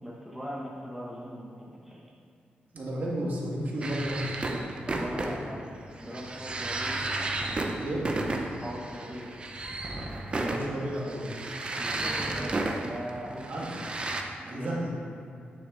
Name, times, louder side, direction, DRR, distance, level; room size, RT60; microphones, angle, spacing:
voice 1, 0.0-2.0 4.9-7.0 8.6-9.3 11.8-13.5 14.5-14.9, equal, 5° right, -5 dB, 1.2 m, -40 dB
voice 2, 2.7-4.4 7.8-8.0 10.3-11.3 13.5-13.7 14.4-14.9, right 1 dB, 55° right, -4 dB, 1.9 m, -32 dB
sound 1, 3.8-14.2, right 2 dB, 30° right, 0.7 m, -33 dB
9.3 x 6.4 x 3.9 m, 2.5 s
wide cardioid pair, 140°, 3 cm